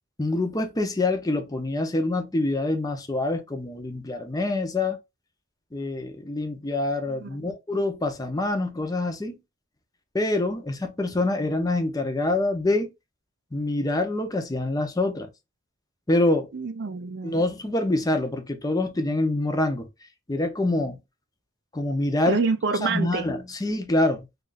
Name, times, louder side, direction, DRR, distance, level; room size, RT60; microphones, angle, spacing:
voice 1, 0.2-5.0 5.7-9.4 10.1-12.9 13.5-15.3 16.1-16.5 17.2-19.9 20.3-21.0 21.7-22.4 22.8-24.2, left 2 dB, 20° left, 0.6 m, -25 dB
voice 2, 7.1-7.5 16.5-17.4 22.3-23.3, right 4 dB, 55° right, 0.4 m, -27 dB
2.9 x 2.4 x 3.9 m
head